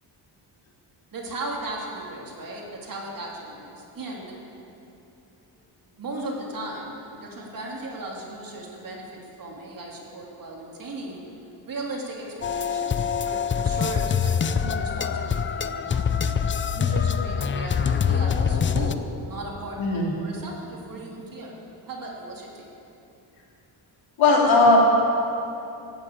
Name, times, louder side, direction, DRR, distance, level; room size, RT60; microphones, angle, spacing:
voice 1, 1.1-4.4 6.0-11.2 11.7-16.4 16.7-22.7, right 2 dB, 45° right, -2 dB, 3.1 m, -36 dB
sound 1, 12.4-18.9, left 7 dB, 30° left, 0.4 m, -24 dB
voice 2, 19.8-20.1 24.2-24.8, left 3 dB, 85° left, -3 dB, 3.6 m, -17 dB
15.5 x 8.4 x 8.8 m, 2.9 s
cardioid pair, 135°, 45 cm